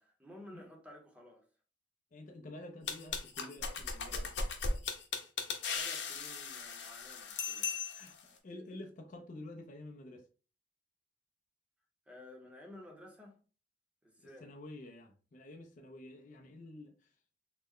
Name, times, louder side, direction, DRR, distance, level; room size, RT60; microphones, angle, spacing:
voice 1, 0.0-1.5 5.7-7.7 12.1-13.4 14.0-14.5, left 1 dB, 5° right, 0.8 m, -53 dB
voice 2, 2.1-4.3 7.9-8.2 8.4-10.3 14.2-17.1, left 1 dB, 45° left, 0.4 m, -49 dB
sound 1, 2.9-8.2, left 4 dB, 90° left, 0.7 m, -37 dB
3.2 x 2.1 x 3.6 m
head